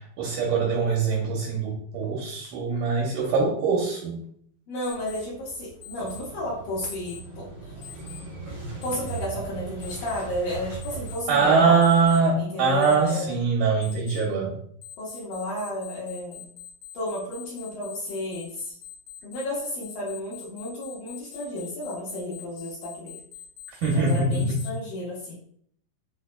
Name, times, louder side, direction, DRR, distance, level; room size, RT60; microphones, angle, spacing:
voice 1, 0.0-4.2 11.3-14.6 23.8-24.6, right 4 dB, 85° right, -2 dB, 1.8 m, -23 dB
voice 2, 4.7-7.5 7.8-7.9 8.8-11.8 12.4-13.4 15.0-16.4 16.9-18.8 19.2-23.2 23.9-25.5, left 1 dB, 70° left, -9 dB, 2.5 m, -32 dB
Alarm, 4.8-5.2 5.8-6.2 6.8-7.2 7.8-8.2 8.8-9.2 9.8-10.2 10.8-11.2 11.8-12.2 12.8-13.2 13.8-14.2 14.8-24.7, left 11 dB, 90° left, 2.6 m, -43 dB
Motorcycle / Engine starting, 4.9-12.1, right 4 dB, 65° right, 0.8 m, -39 dB
6.0 x 2.4 x 2.2 m, 0.63 s
omnidirectional pair, 4.4 m